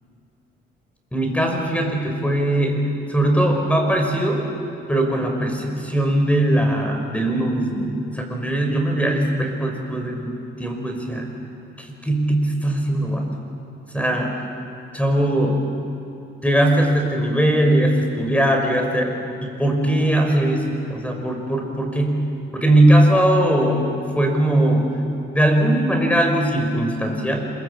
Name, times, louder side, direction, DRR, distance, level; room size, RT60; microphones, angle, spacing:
voice 1, 1.1-4.4 4.9-11.3 11.8-13.3 13.9-14.3 14.9-15.6 16.4-19.1 19.4-20.6 20.9-24.9 25.3-27.5, right 1 dB, 5° left, 3 dB, 5.9 m, -20 dB
27.0 x 22.5 x 8.9 m, 2.7 s
cardioid pair, 90°, 20 cm